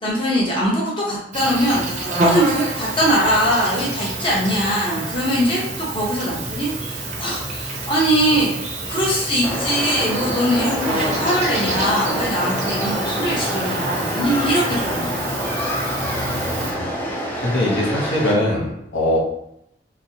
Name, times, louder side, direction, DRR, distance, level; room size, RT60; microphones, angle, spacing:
voice 1, 0.0-15.3, equal, 25° left, -5 dB, 0.7 m, -22 dB
Insect, 1.3-16.7, right 2 dB, 40° right, 0.6 m, -28 dB
sound 1, 9.4-18.3, equal, 10° left, 0.4 m, -26 dB
voice 2, 16.0-16.9 17.4-19.2, left 1 dB, 75° left, -3 dB, 0.8 m, -23 dB
4.1 x 2.0 x 2.7 m, 0.77 s
head